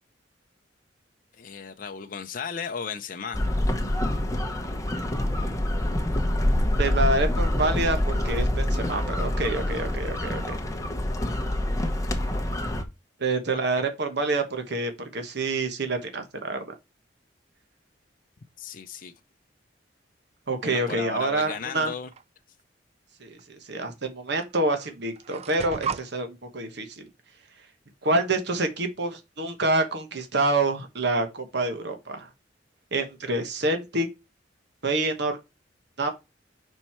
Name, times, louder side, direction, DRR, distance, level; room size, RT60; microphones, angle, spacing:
voice 1, 1.4-3.4 13.5-13.6 18.6-19.1 20.6-22.1, left 6 dB, 50° left, 0.6 m, -35 dB
sound 1, 3.3-12.8, left 1 dB, 15° left, 0.9 m, -26 dB
voice 2, 5.2-5.8 6.8-10.4 13.2-16.6 20.5-21.9 23.2-27.0 28.0-32.3 32.9-34.1 34.8-35.3 36.0-36.2, right 2 dB, 65° right, 1.2 m, -27 dB
sound 2, 21.7-22.2 23.4-23.5 24.4-24.5 24.8-26.1, right 6 dB, 35° right, 0.3 m, -35 dB
5.4 x 4.4 x 4.4 m
head